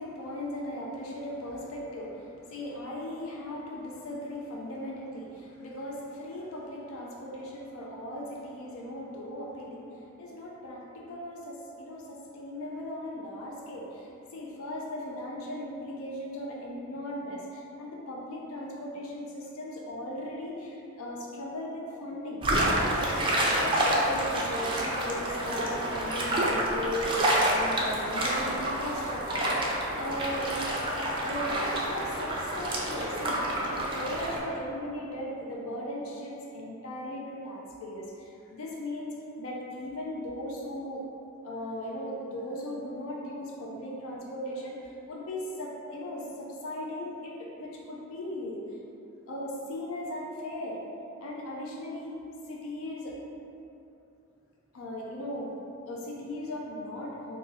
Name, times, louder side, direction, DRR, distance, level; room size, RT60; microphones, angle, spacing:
voice 1, 0.0-22.4 22.8-30.6 31.2-41.0 41.4-48.6 49.3-50.8 51.2-52.1 52.5-53.2 54.7-55.5 55.9-57.4, left 1 dB, 70° left, -3 dB, 0.5 m, -37 dB
sound 1, 22.4-34.4, right 1 dB, 25° right, 0.4 m, -28 dB
2.6 x 2.6 x 4.0 m, 2.8 s
head